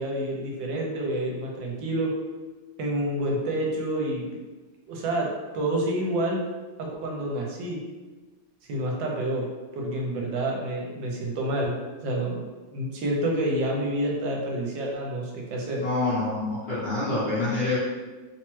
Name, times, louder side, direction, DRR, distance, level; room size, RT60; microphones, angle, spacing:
voice 1, 0.0-2.1 2.8-4.3 4.9-5.3 5.5-6.4 6.8-7.8 8.7-9.5 9.7-11.7 12.0-12.4 12.7-15.8, right 1 dB, 80° right, -1 dB, 1.2 m, -28 dB
voice 2, 15.8-17.8, left 2 dB, 50° left, -11 dB, 0.8 m, -26 dB
3.1 x 2.0 x 3.0 m, 1.3 s
omnidirectional pair, 2.1 m